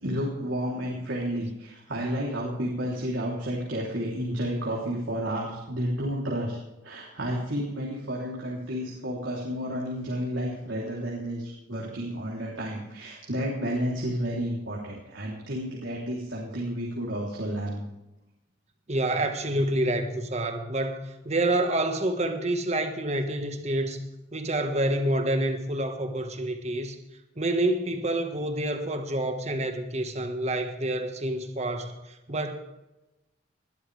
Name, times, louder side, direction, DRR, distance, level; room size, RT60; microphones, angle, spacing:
voice 1, 0.0-6.6 6.8-17.9, equal, 90° right, -4 dB, 3.4 m, -31 dB
voice 2, 18.9-24.0 24.3-27.0 27.4-32.6, right 1 dB, 35° right, 6 dB, 1.5 m, -28 dB
20.0 x 12.0 x 3.4 m, 0.96 s
head